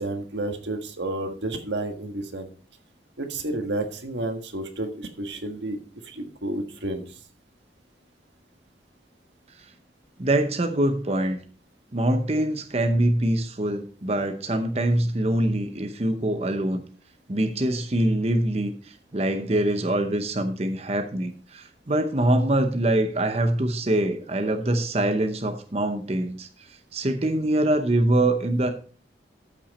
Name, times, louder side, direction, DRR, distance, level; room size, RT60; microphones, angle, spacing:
voice 1, 0.0-2.5 3.2-5.8 6.0-7.0, right 2 dB, 90° right, 6 dB, 1.6 m, -31 dB
voice 2, 10.2-11.4 11.9-16.8 17.3-28.7, right 1 dB, 35° right, 7 dB, 0.8 m, -24 dB
13.5 x 5.9 x 4.2 m, 0.42 s
head